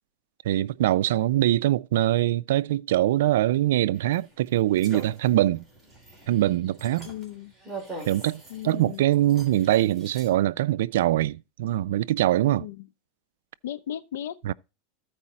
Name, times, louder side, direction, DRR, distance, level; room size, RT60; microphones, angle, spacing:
voice 1, 0.4-5.6 6.3-7.1 8.1-12.7 14.4-14.5, right 14 dB, 80° right, 0.4 m, -23 dB
sound 1, 3.9-10.3, right 2 dB, 10° right, 3.3 m, -43 dB
voice 2, 7.0-7.5 8.5-9.0 12.6-12.9 13.6-14.4, left 11 dB, 85° left, 0.7 m, -36 dB
14.0 x 4.8 x 4.2 m
supercardioid pair, 150°, 0 cm